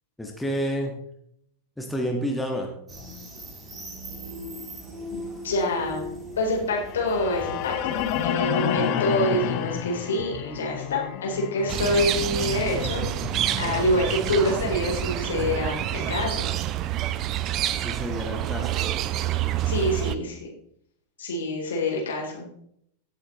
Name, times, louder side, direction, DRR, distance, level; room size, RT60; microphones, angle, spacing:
voice 1, 0.2-1.0 1.8-2.7 17.8-18.8, equal, 5° left, 1 dB, 1.7 m, -29 dB
sound 1, 2.9-8.3, equal, 20° right, 2.4 m, -38 dB
voice 2, 5.1-6.1 6.4-13.1 13.6-16.5 19.4-20.5 21.2-22.5, left 1 dB, 65° left, -1 dB, 3.9 m, -26 dB
sound 2, 6.8-14.9, left 10 dB, 40° left, 1.0 m, -31 dB
sound 3, 11.7-20.2, right 12 dB, 35° right, 0.6 m, -28 dB
17.0 x 8.2 x 3.2 m, 0.70 s
figure-of-eight pair, 90°, 0 cm